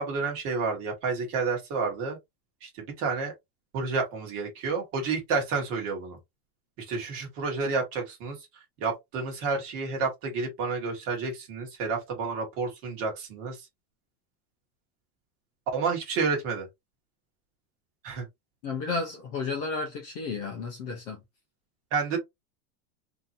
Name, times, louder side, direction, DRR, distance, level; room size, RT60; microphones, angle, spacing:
voice 1, 0.0-2.2 2.6-3.3 3.7-6.2 6.8-8.4 8.8-13.6 15.7-16.7 18.0-18.3 21.9-22.2, right 4 dB, 30° right, 1.2 m, -30 dB
voice 2, 18.6-21.2, left 4 dB, 25° left, 0.5 m, -32 dB
3.7 x 2.8 x 2.6 m
supercardioid pair, 170°, 46 cm